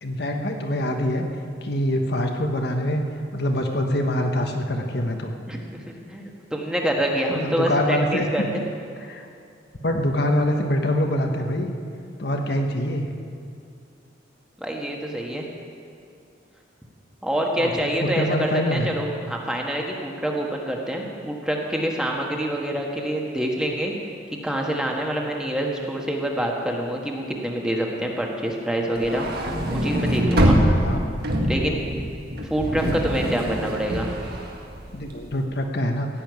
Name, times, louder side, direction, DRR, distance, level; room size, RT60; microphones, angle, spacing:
voice 1, 0.0-1.3 1.6-3.0 3.3-5.3 7.3-8.6 9.1-9.3 9.8-11.7 12.2-13.1 17.6-18.9 30.7-31.0 32.8-33.0 34.9-36.1, left 1 dB, 60° left, 3 dB, 1.1 m, -24 dB
voice 2, 5.5-8.6 14.6-15.5 17.2-23.9 24.4-29.3 29.7-30.6 31.4-31.8 32.5-34.1, right 1 dB, 5° right, 0 dB, 1.4 m, -26 dB
sound 1, 29.0-35.3, equal, 55° right, 1.8 m, -24 dB
16.0 x 7.0 x 9.4 m, 2.5 s
head